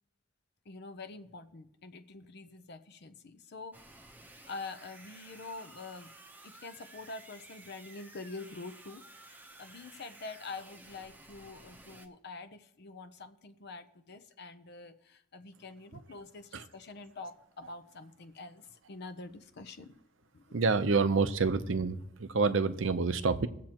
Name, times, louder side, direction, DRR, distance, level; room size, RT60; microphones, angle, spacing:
voice 1, 0.7-3.8 4.5-6.1 6.4-20.0 20.3-20.6, left 3 dB, 55° left, 10 dB, 0.6 m, -46 dB
sound 1, 3.7-12.1, right 2 dB, 10° right, 0.8 m, -54 dB
voice 2, 20.5-23.5, right 4 dB, 75° right, 12 dB, 0.7 m, -28 dB
21.5 x 7.5 x 2.9 m, 0.79 s
head